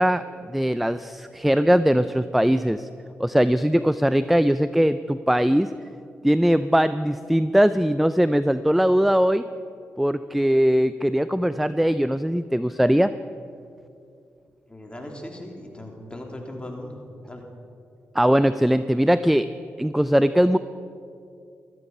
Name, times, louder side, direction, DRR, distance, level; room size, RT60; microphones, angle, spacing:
voice 1, 0.0-2.9 3.2-5.7 6.2-9.4 10.0-13.1 18.1-19.5 19.8-20.6, equal, ahead, 13 dB, 0.4 m, -20 dB
voice 2, 14.7-17.4, left 1 dB, 20° left, 1 dB, 3.4 m, -38 dB
15.5 x 13.5 x 5.5 m, 2.5 s
supercardioid pair, 50°, 5 cm